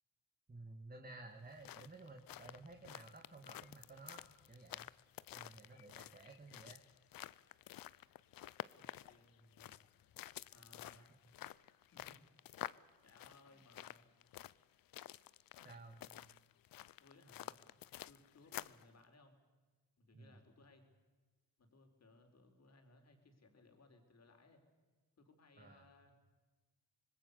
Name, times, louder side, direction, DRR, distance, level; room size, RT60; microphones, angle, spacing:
voice 1, 0.5-4.9 5.3-6.8 11.0-11.1 15.6-16.0 20.1-20.4 25.6-25.9, right 2 dB, 25° right, 3 dB, 2.2 m, -55 dB
sound 1, 1.4-18.9, left 13 dB, 70° left, 0.6 m, -51 dB
voice 2, 8.7-9.9 10.5-11.2 11.9-12.2 13.0-14.1 15.7-16.3 17.0-17.7 18.1-19.4 20.0-20.8 21.6-24.6 25.2-26.2, left 2 dB, 45° left, 4 dB, 4.4 m, -65 dB
26.0 x 20.5 x 7.0 m, 1.3 s
cardioid pair, 85°, 36 cm